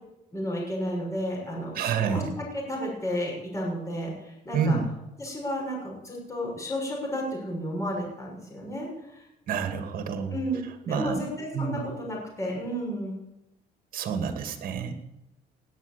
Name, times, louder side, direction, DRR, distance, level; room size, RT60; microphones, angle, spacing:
voice 1, 0.3-4.8 5.2-9.2 10.3-10.6 10.8-13.2, equal, 20° left, -2 dB, 6.6 m, -32 dB
voice 2, 1.7-2.3 4.5-4.9 9.5-10.3 10.9-11.2 11.5-11.8 13.9-14.9, right 6 dB, 55° right, 7 dB, 2.4 m, -28 dB
18.5 x 8.2 x 8.5 m, 0.89 s
cardioid pair, 110°, 17 cm